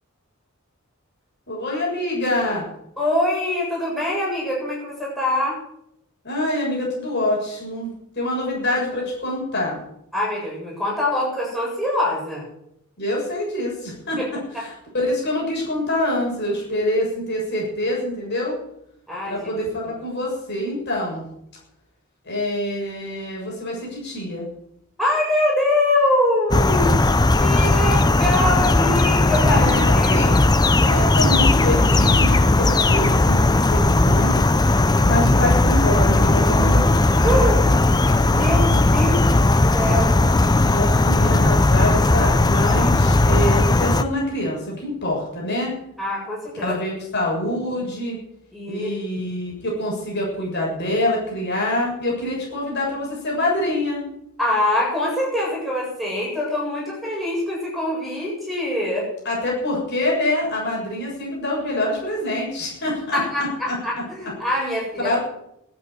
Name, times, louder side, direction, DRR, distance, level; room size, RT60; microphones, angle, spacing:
voice 1, 1.5-2.6 6.2-9.8 13.0-18.6 19.3-21.2 22.2-24.5 29.4-30.4 30.8-37.0 39.8-39.9 40.7-45.7 46.6-48.2 48.7-54.1 59.3-63.8 64.2-64.3 65.0-65.2, left 1 dB, 50° left, -3 dB, 7.0 m, -25 dB
voice 2, 3.0-5.6 10.1-12.4 14.2-14.3 19.1-19.5 25.0-27.1 27.4-29.6 29.9-30.6 37.2-37.7 38.3-40.4 46.0-46.7 48.5-49.0 54.4-59.1 63.1-65.2, left 1 dB, ahead, -5 dB, 7.8 m, -24 dB
sound 1, 26.5-44.0, left 2 dB, 20° left, 0.5 m, -17 dB
12.5 x 9.1 x 9.7 m, 0.77 s
head